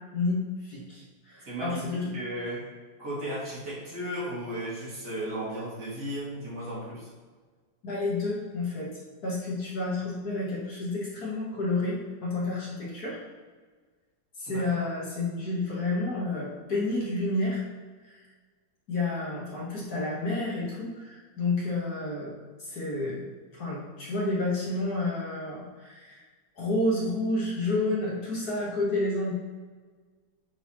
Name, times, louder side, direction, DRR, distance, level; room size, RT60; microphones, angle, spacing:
voice 1, 0.1-2.0 7.8-8.9 9.2-13.2 14.4-17.6 18.0-18.2 18.9-22.3 22.6-23.3 23.5-26.2 26.6-29.3, left 2 dB, 55° left, -5 dB, 1.6 m, -30 dB
voice 2, 1.5-1.8 2.1-2.6 3.0-7.1 14.5-14.9, right 1 dB, 55° right, -7 dB, 2.5 m, -35 dB
8.4 x 4.0 x 2.9 m, 1.4 s
omnidirectional pair, 2.2 m